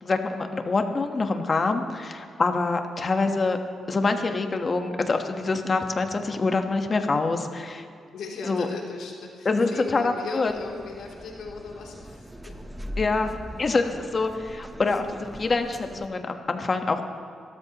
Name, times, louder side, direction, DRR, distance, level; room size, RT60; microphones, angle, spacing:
voice 1, 0.0-3.6 3.9-7.9 8.4-8.7 9.4-10.5 13.0-17.0, left 3 dB, 35° left, 5 dB, 1.2 m, -25 dB
voice 2, 8.1-12.5, left 4 dB, 85° left, -2 dB, 2.9 m, -37 dB
sound 1, 10.5-16.1, equal, 10° right, 0.8 m, -40 dB
26.5 x 13.0 x 3.0 m, 2.4 s
cardioid pair, 125°, 0 cm